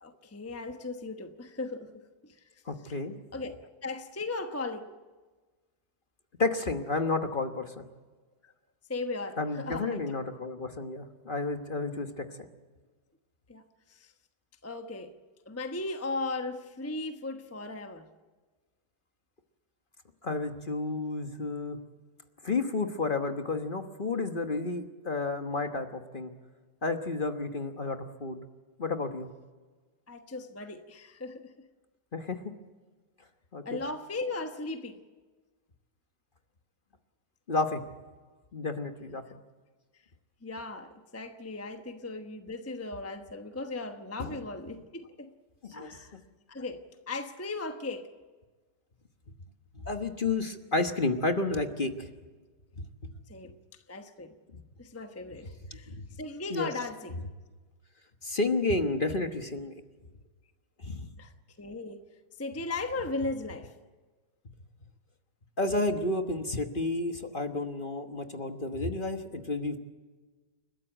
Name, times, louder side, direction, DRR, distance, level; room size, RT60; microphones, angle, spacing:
voice 1, 0.0-2.0 2.9-3.0 3.3-3.5 3.8-4.9 8.4-8.5 8.9-10.2 13.5-13.6 13.9-14.1 14.6-15.1 15.5-18.1 30.1-31.5 33.6-35.0 40.4-45.3 45.7-46.1 46.5-46.8 47.1-48.1 53.3-53.5 53.9-54.3 54.8-55.9 56.2-57.1 61.2-61.3 61.6-62.0 62.4-63.7, left 3 dB, 10° left, 0.8 m, -37 dB
voice 2, 2.7-3.2 6.4-7.8 9.4-12.5 20.2-21.8 22.4-26.3 26.8-28.4 28.8-29.3 32.1-32.4 33.5-33.8 37.5-37.8 38.5-39.2 44.2-44.4 45.6-45.9 49.8-52.1 54.5-54.6 55.7-56.0 56.5-56.7 58.2-59.7 60.8-61.1 65.6-69.8, left 3 dB, 35° left, 1.2 m, -31 dB
30.0 x 13.0 x 8.9 m
omnidirectional pair, 1.9 m